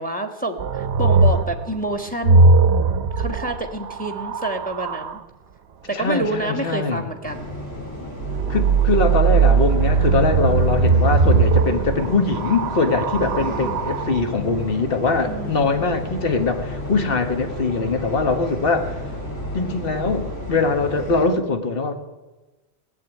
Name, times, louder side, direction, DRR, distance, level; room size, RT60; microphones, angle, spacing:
voice 1, 0.0-2.5 3.2-5.2 5.9-7.5 13.2-13.8 15.3-15.7, right 1 dB, 10° left, 6 dB, 1.3 m, -28 dB
sound 1, 0.6-5.2 8.2-14.3 15.3-15.9, right 4 dB, 75° right, 1.0 m, -19 dB
voice 2, 5.9-7.1 8.5-19.0 19.5-21.9, left 3 dB, 60° left, 7 dB, 1.5 m, -22 dB
sound 2, 7.2-21.2, left 1 dB, 75° left, 4.3 m, -32 dB
17.0 x 7.8 x 9.2 m, 1.1 s
omnidirectional pair, 1.1 m